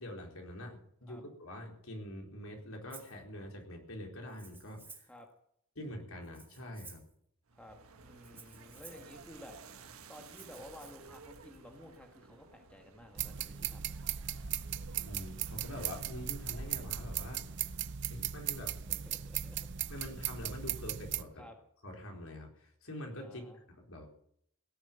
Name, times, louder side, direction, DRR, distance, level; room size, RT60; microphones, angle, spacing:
voice 1, 0.0-5.1 5.8-7.0 15.1-17.4 18.1-18.7 19.9-21.4 21.8-24.1, left 1 dB, 70° left, 1 dB, 4.0 m, -45 dB
Rattle (instrument), 2.9-3.2 4.3-5.2 6.2-7.1 8.2-9.1 10.2-10.9, right 4 dB, 10° right, 2.0 m, -54 dB
voice 2, 7.5-13.9 18.9-19.7 21.4-21.6 23.2-23.6, left 1 dB, 5° left, 3 dB, 1.8 m, -53 dB
sound 1, 7.5-17.9, right 2 dB, 75° right, 1.5 m, -52 dB
sound 2, 13.2-21.2, right 11 dB, 55° right, 0.7 m, -38 dB
17.5 x 7.9 x 9.2 m, 0.69 s
head